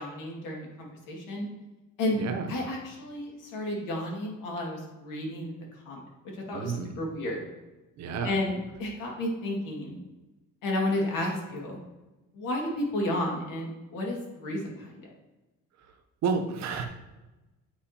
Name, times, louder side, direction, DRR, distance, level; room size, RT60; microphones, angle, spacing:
voice 1, 0.0-1.5 2.0-2.2 2.5-5.5 5.9-6.0 6.5-6.7 7.0-7.5 8.2-10.0 10.6-11.8 12.3-14.9, left 1 dB, 85° left, -1 dB, 2.2 m, -32 dB
voice 2, 2.2-2.5 6.5-7.0 8.0-8.4 15.8-15.9 16.2-16.8, right 5 dB, 60° right, 5 dB, 0.9 m, -31 dB
8.6 x 4.8 x 2.9 m, 1.1 s
cardioid pair, 140°, 31 cm